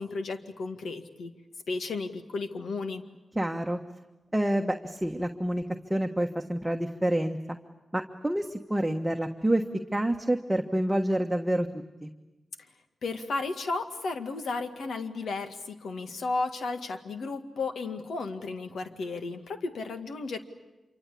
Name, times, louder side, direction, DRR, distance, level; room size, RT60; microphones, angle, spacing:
voice 1, 0.0-1.3 1.7-3.0 13.0-20.4, left 3 dB, 85° left, 7 dB, 1.9 m, -33 dB
voice 2, 3.3-3.8 4.3-5.6 5.9-7.4 7.9-9.6 9.9-11.7 12.0-12.1, right 1 dB, 10° right, 3 dB, 1.4 m, -27 dB
27.0 x 24.5 x 8.5 m, 1.1 s
cardioid pair, 70°, 0 cm